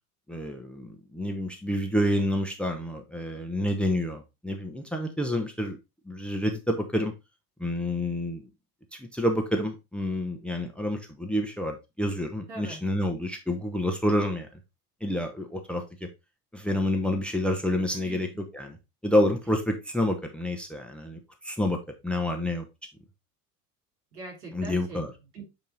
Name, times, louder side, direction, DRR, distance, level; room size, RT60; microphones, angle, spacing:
voice 1, 0.3-5.8 6.1-7.1 7.6-8.4 9.1-14.5 15.0-16.1 16.5-18.3 18.5-18.8 19.0-22.6 24.5-25.1, left 1 dB, ahead, 0.9 m, -28 dB
voice 2, 12.5-12.8 17.9-18.3 24.1-25.5, right 3 dB, 70° right, 3.5 m, -42 dB
8.6 x 3.0 x 3.7 m
figure-of-eight pair, 65°, 47 cm